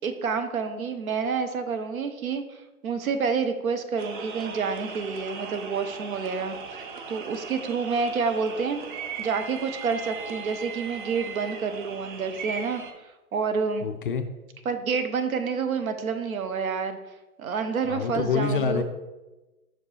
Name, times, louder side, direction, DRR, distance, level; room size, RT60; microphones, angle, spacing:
voice 1, 0.0-2.6 2.8-6.6 7.1-8.8 9.2-13.9 14.7-17.0 17.4-18.8, right 5 dB, 70° right, 8 dB, 0.9 m, -28 dB
sound 1, 4.0-12.9, right 5 dB, 35° right, 0.6 m, -38 dB
voice 2, 13.8-14.2 17.9-18.8, left 5 dB, 40° left, 7 dB, 0.4 m, -26 dB
6.1 x 4.8 x 3.3 m, 1.1 s
hypercardioid pair, 125°, 44 cm